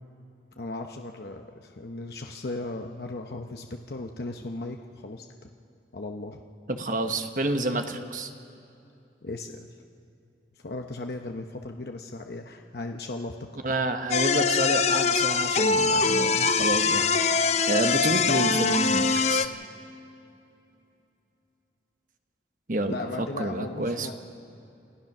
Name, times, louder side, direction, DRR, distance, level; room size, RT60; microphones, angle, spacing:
voice 1, 0.6-5.3 5.9-6.4 9.2-9.7 10.6-13.4 13.6-13.7 22.9-24.1, left 2 dB, 60° left, 3 dB, 0.9 m, -36 dB
voice 2, 6.7-8.3 13.6-19.5 22.7-24.1, right 2 dB, 45° right, 6 dB, 1.2 m, -29 dB
sound 1, 14.1-19.5, left 5 dB, 35° left, 0.5 m, -23 dB
28.5 x 15.0 x 6.1 m, 2.7 s
head